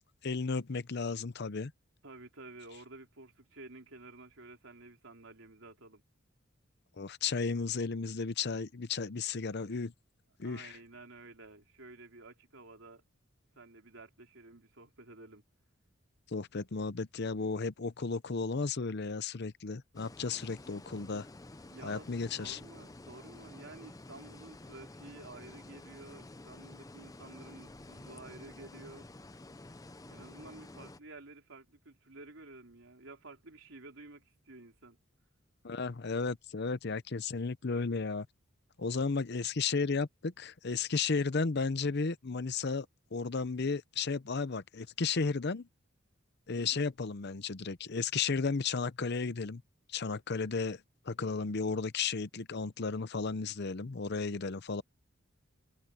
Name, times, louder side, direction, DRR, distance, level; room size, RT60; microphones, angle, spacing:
voice 1, 0.2-1.7 7.0-9.9 10.4-10.8 16.3-21.3 21.8-22.6 35.6-38.3 38.8-42.9 43.1-45.7 46.5-49.6 49.9-50.8 51.1-54.8, left 4 dB, 55° left, 0.7 m, -34 dB
voice 2, 2.0-6.0 10.4-13.0 13.5-15.4 21.7-22.1 22.4-29.1 30.0-35.0 46.5-46.9, right 2 dB, 80° right, 3.5 m, -52 dB
sound 1, 19.9-31.0, left 2 dB, 15° left, 0.6 m, -51 dB
head